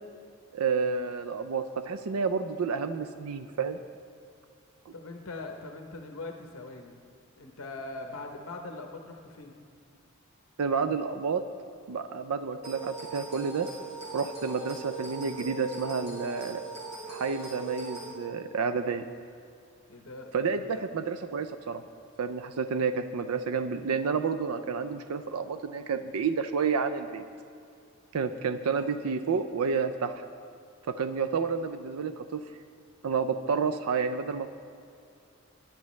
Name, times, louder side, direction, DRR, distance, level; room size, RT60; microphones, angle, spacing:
voice 1, 0.5-3.8 10.6-11.4 11.9-13.7 14.1-16.6 17.1-19.0 20.3-21.8 22.2-27.3 28.1-30.1 30.9-32.4 33.0-34.5, right 5 dB, 80° right, 10 dB, 0.5 m, -30 dB
voice 2, 4.9-7.0 7.4-9.6 19.9-20.9 28.2-28.4, left 2 dB, 65° left, 3 dB, 0.9 m, -42 dB
sound 1, 12.6-18.1, right 3 dB, 30° right, 2.8 m, -40 dB
19.0 x 10.5 x 3.2 m, 2.4 s
head